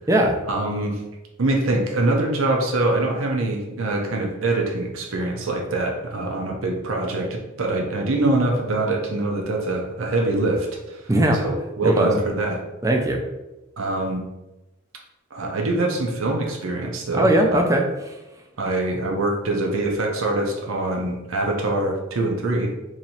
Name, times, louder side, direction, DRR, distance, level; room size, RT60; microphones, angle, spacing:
voice 1, 0.5-1.0 1.4-11.0 11.4-12.6 13.8-14.2 15.3-17.4 18.6-22.7, right 2 dB, 85° right, 1 dB, 0.7 m, -24 dB
voice 2, 11.1-11.5 11.8-12.1 12.8-13.2 17.1-17.8, right 1 dB, 15° right, 2 dB, 0.4 m, -19 dB
3.0 x 2.8 x 4.1 m, 1.0 s
head